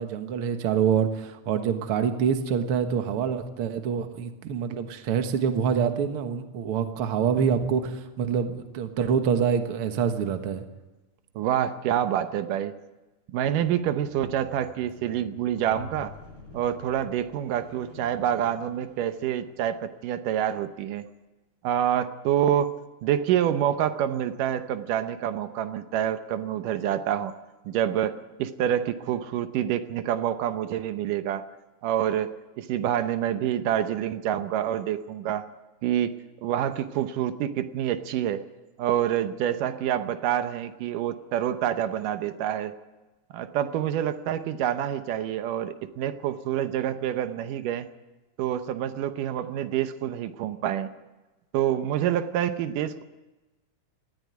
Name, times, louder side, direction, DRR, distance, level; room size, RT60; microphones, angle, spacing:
voice 1, 0.0-10.6, right 7 dB, 55° right, 7 dB, 1.9 m, -26 dB
voice 2, 11.4-12.7 13.3-16.1 16.5-21.0 21.6-22.8 23.0-27.3 27.7-31.4 31.8-35.4 35.8-38.4 38.8-42.7 43.3-47.9 48.4-50.9 51.5-53.0, right 10 dB, 85° right, 10 dB, 2.6 m, -27 dB
Squeak, 13.6-19.9 20.7-20.8, left 4 dB, 40° left, 6.1 m, -49 dB
19.0 x 14.5 x 9.5 m, 1.1 s
omnidirectional pair, 3.7 m